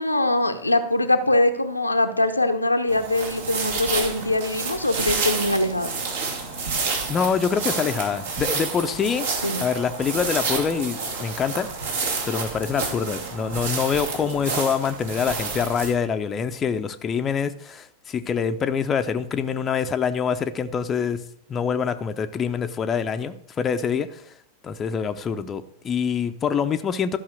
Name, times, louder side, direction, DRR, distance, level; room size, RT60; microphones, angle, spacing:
voice 1, 0.0-5.9 9.4-9.6, left 2 dB, 85° left, 7 dB, 0.8 m, -22 dB
sound 1, 2.9-15.9, right 4 dB, 65° right, 2.5 m, -29 dB
voice 2, 7.1-9.3 9.6-11.7 12.3-21.2 21.5-24.3 24.6-27.2, left 6 dB, 25° left, 8 dB, 0.6 m, -25 dB
12.5 x 5.7 x 6.4 m, 0.68 s
figure-of-eight pair, 90°, 0 cm